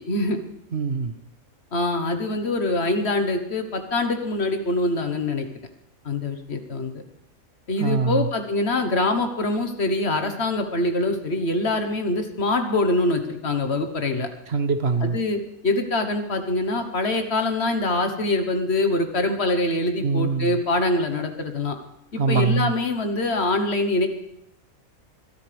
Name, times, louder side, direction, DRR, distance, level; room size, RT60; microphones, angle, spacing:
voice 1, 0.1-0.4 1.7-5.5 6.0-6.9 7.7-14.3 15.0-21.8 22.1-24.1, left 2 dB, 55° left, 6 dB, 1.5 m, -24 dB
voice 2, 0.7-1.2 7.8-8.3 14.5-15.2 20.0-20.5 22.2-22.7, right 4 dB, 55° right, 8 dB, 1.2 m, -23 dB
23.0 x 12.5 x 3.4 m, 0.78 s
omnidirectional pair, 1.4 m